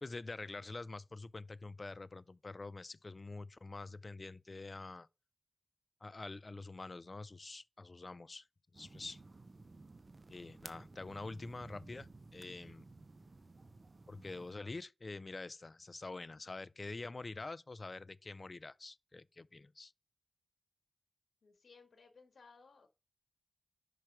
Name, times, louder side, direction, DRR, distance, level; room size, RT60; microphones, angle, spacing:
voice 1, 0.0-5.1 6.0-8.5 8.7-9.2 10.3-12.9 14.1-19.9, left 3 dB, 40° left, 0.4 m, -46 dB
sound 1, 8.7-14.6, right 3 dB, 40° right, 0.6 m, -55 dB
voice 2, 21.4-22.9, left 4 dB, 70° left, 1.8 m, -61 dB
5.8 x 4.5 x 4.9 m
wide cardioid pair, 80°, 0 cm